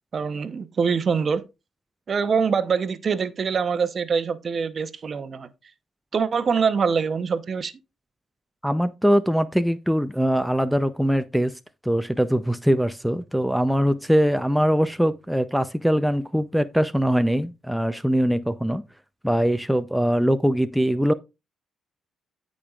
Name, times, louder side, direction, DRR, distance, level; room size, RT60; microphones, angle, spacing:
voice 1, 0.1-1.5 2.1-5.5 6.1-7.7, right 6 dB, 45° right, 0.8 m, -24 dB
voice 2, 8.6-11.5 11.8-18.8 19.2-21.1, equal, ahead, 0.5 m, -22 dB
15.0 x 5.2 x 2.4 m
cardioid pair, 90°, 0 cm